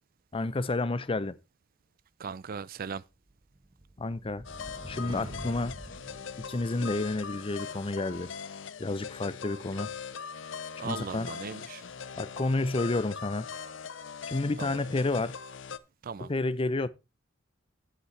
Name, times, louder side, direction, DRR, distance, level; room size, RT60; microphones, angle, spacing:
voice 1, 0.3-1.4 4.0-4.4 4.9-5.8 6.5-8.3 8.8-9.9 10.8-11.3 12.2-13.5 14.3-15.4 16.2-16.9, left 2 dB, 30° left, 0.5 m, -30 dB
voice 2, 2.2-3.0 10.8-11.8 14.6-14.8 16.0-16.3, right 5 dB, 45° right, 0.4 m, -38 dB
sound 1, 3.3-7.1, right 1 dB, 20° right, 1.2 m, -45 dB
sound 2, 4.4-15.8, left 6 dB, 70° left, 0.7 m, -41 dB
11.0 x 8.4 x 3.3 m
head